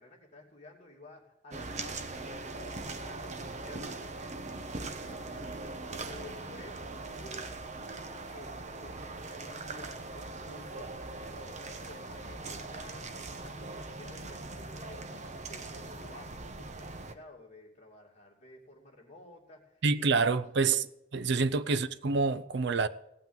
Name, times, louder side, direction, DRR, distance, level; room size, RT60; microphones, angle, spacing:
voice 1, 0.0-20.7 21.3-21.5, left 1 dB, 35° left, 2.8 m, -53 dB
sound 1, 1.5-17.1, right 3 dB, 40° right, 1.0 m, -41 dB
Subway metro underground, 3.3-14.7, left 1 dB, 55° left, 2.2 m, -58 dB
voice 2, 19.8-20.9 21.1-22.9, right 4 dB, 60° right, 0.5 m, -27 dB
17.0 x 5.9 x 7.4 m
head